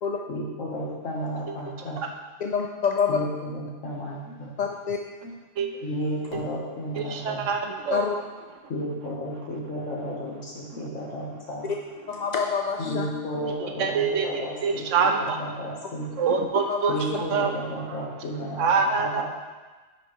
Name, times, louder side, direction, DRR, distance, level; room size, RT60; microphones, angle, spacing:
voice 1, 0.3-2.0 3.1-4.5 5.2-7.5 8.7-11.7 12.8-16.1 16.9-19.2, equal, 85° left, -4 dB, 1.7 m, -33 dB
voice 2, 2.4-3.1 4.6-5.0 7.9-8.2 12.1-13.1 16.7-16.9, left 6 dB, 60° left, 2 dB, 0.4 m, -26 dB
voice 3, 7.0-8.1 13.6-15.4 16.2-18.0 18.6-19.2, right 5 dB, 85° right, 4 dB, 1.1 m, -25 dB
10.0 x 5.2 x 3.2 m, 1.3 s
omnidirectional pair, 1.3 m